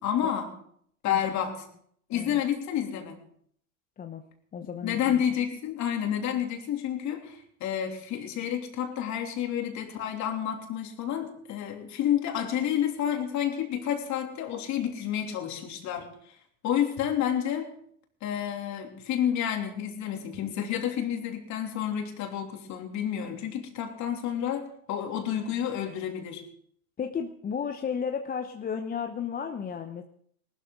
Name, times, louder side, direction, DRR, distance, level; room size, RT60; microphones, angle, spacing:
voice 1, 0.0-0.5 1.0-1.6 2.1-3.2 4.8-16.1 16.6-17.7 18.2-26.4, left 9 dB, 40° left, 3 dB, 3.2 m, -30 dB
voice 2, 4.5-5.2 27.0-30.0, left 7 dB, 20° left, 6 dB, 0.9 m, -33 dB
19.5 x 13.0 x 3.9 m, 0.64 s
hypercardioid pair, 95°, 41 cm